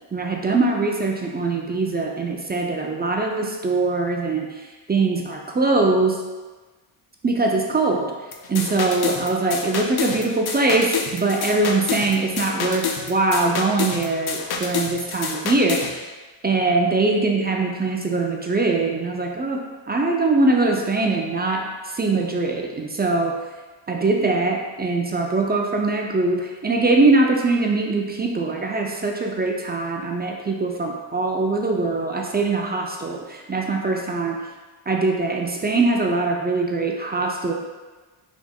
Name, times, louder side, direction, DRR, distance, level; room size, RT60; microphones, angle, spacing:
voice 1, 0.1-6.2 7.2-8.1 8.5-16.0 16.4-19.6 19.9-23.3 23.9-34.4 34.9-37.5, right 3 dB, 20° right, 0 dB, 0.4 m, -22 dB
sound 1, 8.3-15.9, left 5 dB, 55° left, 0.6 m, -28 dB
4.4 x 3.4 x 2.3 m, 1.3 s
cardioid pair, 80°, 47 cm